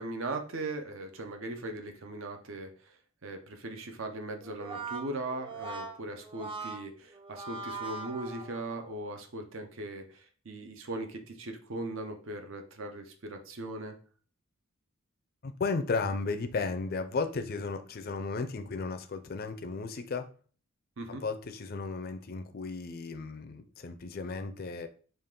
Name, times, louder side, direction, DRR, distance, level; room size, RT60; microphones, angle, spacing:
voice 1, 0.0-3.0 3.2-14.0 21.0-21.2, right 2 dB, 65° right, 0.7 m, -39 dB
Brass instrument, 4.4-8.9, right 3 dB, 25° right, 0.5 m, -41 dB
voice 2, 15.4-20.3 21.1-24.9, left 4 dB, 45° left, 0.5 m, -34 dB
5.2 x 2.5 x 3.7 m
head